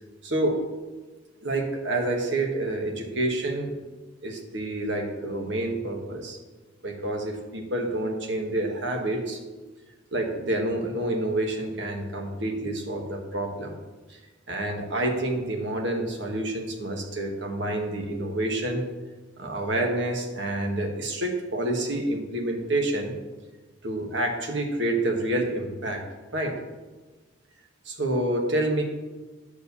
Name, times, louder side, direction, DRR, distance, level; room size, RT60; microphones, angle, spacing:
voice 1, 0.2-0.6 1.4-3.7 4.2-6.4 6.8-9.4 10.1-13.8 14.1-14.2 14.5-18.9 19.4-23.1 23.8-26.0 26.3-26.6 27.8-28.8, right 1 dB, 65° right, 2 dB, 1.5 m, -28 dB
8.9 x 5.0 x 6.9 m, 1.3 s
head